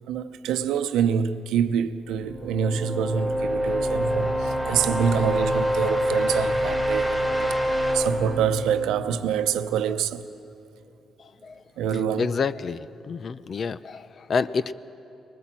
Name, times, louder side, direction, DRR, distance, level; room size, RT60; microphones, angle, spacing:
voice 1, 0.1-7.5 7.9-10.2 11.8-12.3, right 8 dB, 85° right, 0.8 m, -26 dB
sound 1, 2.1-9.9, equal, 15° left, 3.2 m, -26 dB
voice 2, 11.2-11.6 12.2-14.7, left 5 dB, 50° left, 0.6 m, -28 dB
25.0 x 20.0 x 7.6 m
cardioid pair, 90°, 0 cm